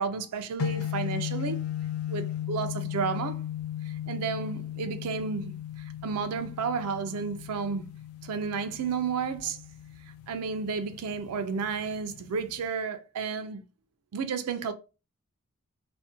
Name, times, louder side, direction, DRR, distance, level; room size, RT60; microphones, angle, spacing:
voice 1, 0.0-1.6 2.1-3.4 3.8-5.6 6.0-7.9 8.2-9.6 10.3-13.6 14.1-14.7, right 5 dB, 85° right, 0.4 m, -32 dB
sound 1, 0.6-12.7, left 11 dB, 75° left, 0.3 m, -36 dB
2.6 x 2.1 x 2.5 m
head